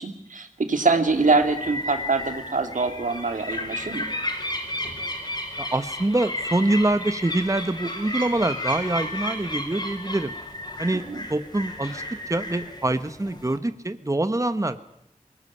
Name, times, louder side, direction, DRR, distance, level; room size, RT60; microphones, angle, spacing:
voice 1, 0.0-4.0 10.9-11.2, right 3 dB, 80° right, 6 dB, 2.5 m, -24 dB
sound 1, 1.1-13.6, left 1 dB, 35° left, 5.6 m, -33 dB
voice 2, 5.6-10.3 10.8-11.0 11.3-12.0 12.3-14.8, right 2 dB, 25° right, 11 dB, 1.2 m, -25 dB
22.0 x 19.0 x 9.9 m, 0.79 s
wide cardioid pair, 45°, 13 cm